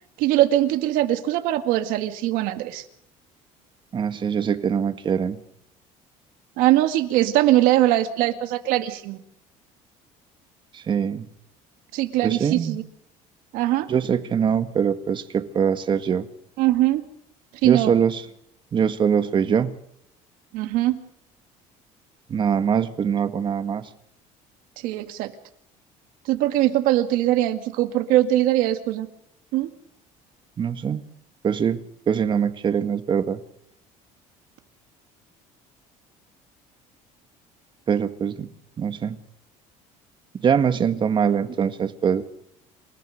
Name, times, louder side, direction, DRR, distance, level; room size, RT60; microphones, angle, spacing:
voice 1, 0.2-2.8 6.6-9.2 11.9-12.8 13.5-13.9 16.6-17.0 17.6-17.9 20.5-21.0 24.8-25.3 26.3-29.1 29.5-29.7, right 14 dB, 80° right, 8 dB, 2.1 m, -21 dB
voice 2, 3.9-5.4 10.9-11.3 12.2-12.8 13.9-16.3 17.6-18.2 18.7-19.7 22.3-23.8 30.6-31.0 31.4-31.8 32.1-33.4 37.9-38.5 38.8-39.1 40.4-42.2, right 7 dB, 35° right, 10 dB, 1.7 m, -23 dB
28.0 x 15.0 x 6.6 m, 0.73 s
cardioid pair, 130°, 14 cm